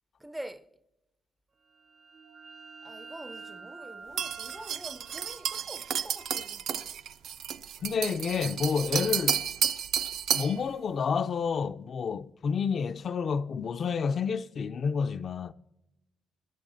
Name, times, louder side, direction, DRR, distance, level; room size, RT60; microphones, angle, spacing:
voice 1, 0.2-0.7 2.8-6.6, right 1 dB, 10° right, 0.5 m, -45 dB
sound 1, 1.7-7.2, right 4 dB, 45° right, 0.7 m, -49 dB
sound 2, 4.2-10.6, right 8 dB, 75° right, 0.4 m, -31 dB
voice 2, 7.8-9.4 10.3-15.5, left 6 dB, 50° left, 0.4 m, -29 dB
21.5 x 11.5 x 2.6 m
cardioid pair, 90°, 0 cm